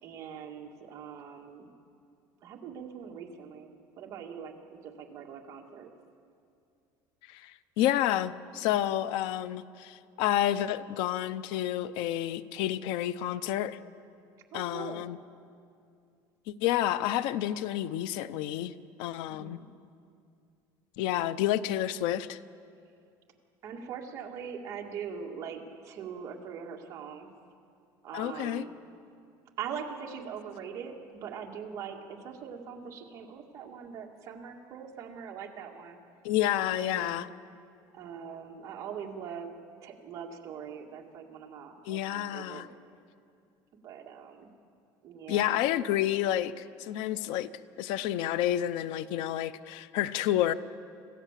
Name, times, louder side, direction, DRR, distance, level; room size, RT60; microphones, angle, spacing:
voice 1, 0.0-1.7 2.4-3.7 4.0-5.9 14.5-15.0 19.3-19.6 23.6-27.3 28.0-28.7 29.6-36.0 36.6-37.3 37.9-39.5 39.8-42.6 43.8-44.5 45.0-45.6, right 7 dB, 40° right, 1 dB, 2.0 m, -42 dB
voice 2, 7.3-13.8 14.5-15.2 16.5-19.6 21.0-22.4 28.1-28.6 36.2-37.3 41.8-42.7 45.3-47.5 47.8-50.5, left 12 dB, 70° left, 15 dB, 0.6 m, -30 dB
26.0 x 15.5 x 7.5 m, 2.4 s
cardioid pair, 165°, 8 cm